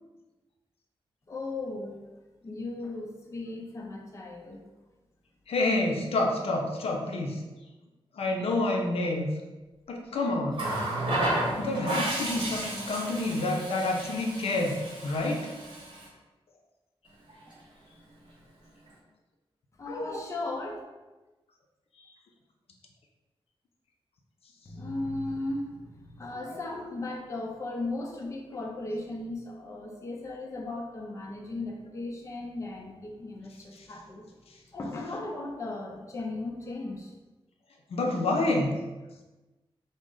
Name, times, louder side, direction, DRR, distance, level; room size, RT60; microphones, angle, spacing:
voice 1, 1.3-2.0 2.4-4.6 19.8-20.8 24.7-34.3 34.7-37.1, left 2 dB, 30° left, 0 dB, 0.5 m, -36 dB
voice 2, 5.5-7.4 8.2-9.3 9.9-10.6 11.6-14.8 15.0-15.5 37.9-38.8, left 2 dB, 80° left, 1 dB, 0.5 m, -28 dB
Water tap faucet, 10.5-16.1 17.3-17.5, right 1 dB, 55° right, 1.0 m, -32 dB
3.7 x 2.0 x 3.7 m, 1.1 s
wide cardioid pair, 160°, 10 cm